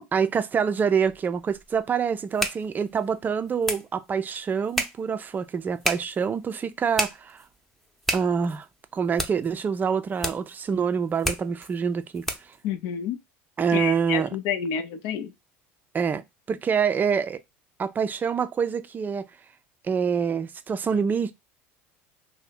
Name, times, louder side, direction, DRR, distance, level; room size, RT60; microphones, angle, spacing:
voice 1, 0.1-7.4 8.1-8.7 8.9-12.3 13.6-14.3 15.9-17.4 17.8-19.3 19.8-21.3, right 6 dB, 30° right, 0.4 m, -26 dB
sound 1, 1.0-12.6, equal, 5° left, 0.7 m, -34 dB
voice 2, 12.6-13.2 13.7-15.3, left 8 dB, 65° left, 0.5 m, -29 dB
2.7 x 2.1 x 4.0 m
hypercardioid pair, 85°, 6 cm